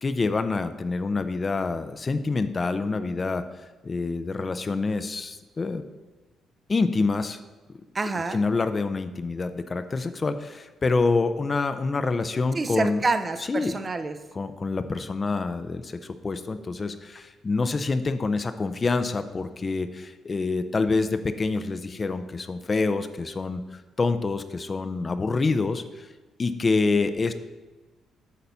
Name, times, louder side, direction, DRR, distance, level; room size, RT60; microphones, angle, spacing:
voice 1, 0.0-3.4 3.8-5.8 6.7-7.4 8.3-13.0 13.5-13.7 14.3-23.6 24.0-26.1 26.4-27.3, left 3 dB, 30° left, 10 dB, 0.5 m, -26 dB
voice 2, 7.9-8.4 12.5-14.2, right 3 dB, 30° right, 9 dB, 0.6 m, -27 dB
8.5 x 4.1 x 6.9 m, 1.2 s
cardioid pair, 90°, 0 cm